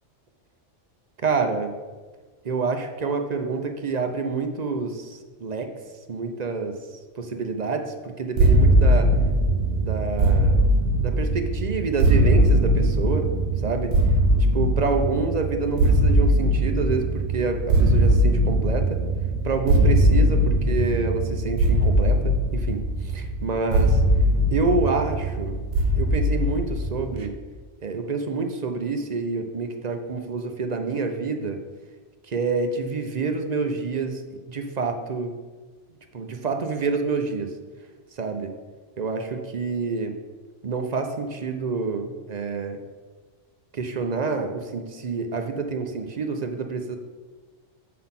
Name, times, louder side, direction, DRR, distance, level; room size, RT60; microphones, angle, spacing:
voice 1, 1.2-1.7 2.4-5.7 6.1-6.8 7.2-9.1 9.8-10.5 11.0-13.3 13.6-14.0 14.5-19.0 19.4-24.0 24.5-25.6 26.0-27.3 27.8-31.6 32.2-34.2 34.5-35.4 36.1-37.5 38.1-38.5 39.0-40.1 40.6-42.8 43.7-47.0, right 4 dB, 45° right, 5 dB, 0.6 m, -27 dB
sound 1, 8.4-27.3, right 1 dB, 80° right, 1.0 m, -20 dB
7.4 x 3.9 x 5.7 m, 1.3 s
omnidirectional pair, 1.2 m